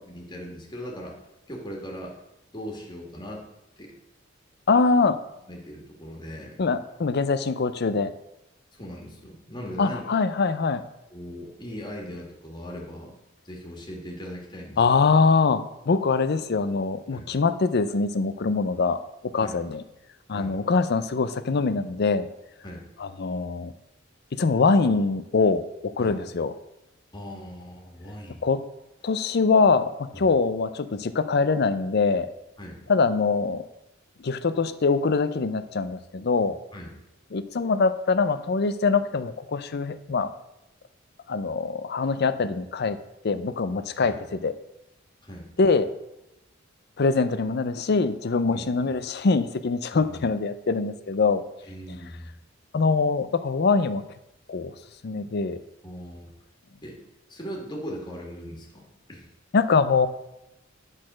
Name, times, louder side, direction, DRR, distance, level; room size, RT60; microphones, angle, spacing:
voice 1, 0.1-1.2 1.5-2.1 2.5-3.5 3.8-3.9 5.5-6.5 8.7-10.1 11.1-13.1 13.4-15.1 17.1-17.3 19.4-19.6 20.3-20.6 22.6-22.9 26.0-26.2 27.1-28.4 30.1-30.3 32.6-32.8 36.7-36.9 43.9-44.2 45.2-45.5 48.5-48.6 49.9-50.2 51.6-52.3 55.8-56.3 56.8-57.0 57.3-59.3, equal, 25° left, -1 dB, 1.9 m, -39 dB
voice 2, 4.7-5.2 6.6-8.1 9.8-10.8 14.8-19.0 19.3-19.8 20.3-22.3 23.0-23.7 24.4-26.5 28.4-28.6 29.0-32.3 32.9-33.6 34.2-36.6 37.3-40.3 41.3-43.0 43.2-44.5 45.6-45.9 47.0-51.4 52.7-54.0 54.5-54.7 55.0-55.6 59.5-60.1, left 4 dB, 55° left, 12 dB, 0.5 m, -23 dB
10.5 x 4.1 x 6.2 m, 0.89 s
head